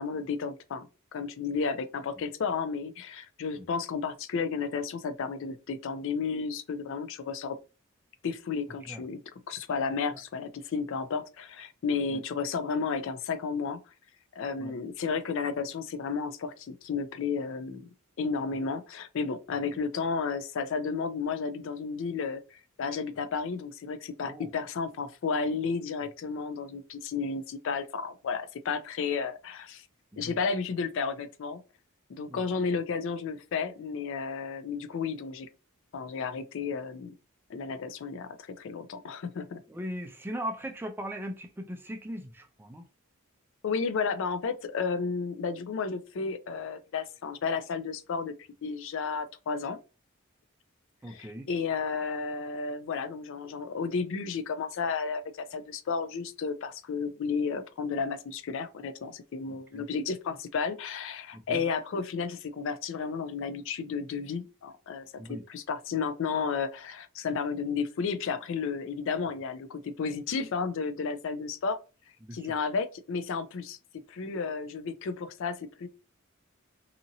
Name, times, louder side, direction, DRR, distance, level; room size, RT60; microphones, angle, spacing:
voice 1, 0.0-7.6 8.2-9.2 9.5-13.8 14.4-17.9 18.2-29.9 30.2-31.6 32.1-35.5 35.9-37.1 37.5-39.6 43.6-48.3 48.6-49.8 51.1-71.8 72.3-73.8 74.1-75.9, left 5 dB, 60° left, 0.4 m, -32 dB
voice 2, 32.3-32.7 39.7-42.9 51.0-51.5 59.5-59.8 61.3-61.6 65.2-65.4 72.2-72.5, equal, 10° right, 0.4 m, -39 dB
2.8 x 2.6 x 2.6 m
head